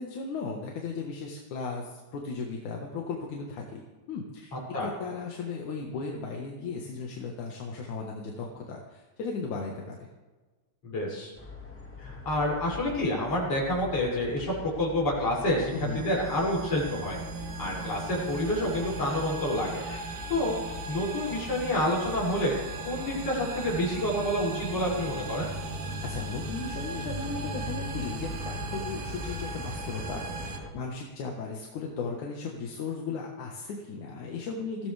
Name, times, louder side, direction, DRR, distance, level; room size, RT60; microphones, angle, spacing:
voice 1, 0.0-3.8 4.1-4.6 4.8-10.1 15.7-16.0 26.0-34.9, left 4 dB, 80° left, 0 dB, 3.0 m, -36 dB
voice 2, 10.8-11.3 12.0-17.2 17.6-19.8 20.3-22.5 22.8-25.5, left 1 dB, 50° left, -5 dB, 7.5 m, -28 dB
sound 1, 11.4-30.7, left 3 dB, 5° left, 1.2 m, -42 dB
sound 2, 15.6-30.6, right 3 dB, 50° right, 2.3 m, -38 dB
21.5 x 16.0 x 3.5 m, 1.3 s
omnidirectional pair, 3.4 m